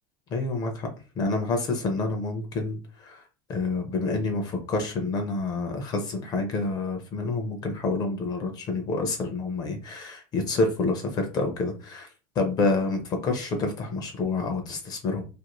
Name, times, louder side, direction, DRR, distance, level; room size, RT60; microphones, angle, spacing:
voice 1, 0.3-0.9 1.2-3.2 3.5-12.1 12.4-15.2, left 3 dB, 25° left, 5 dB, 0.5 m, -28 dB
2.5 x 2.4 x 2.9 m, 0.33 s
supercardioid pair, 165°, 15 cm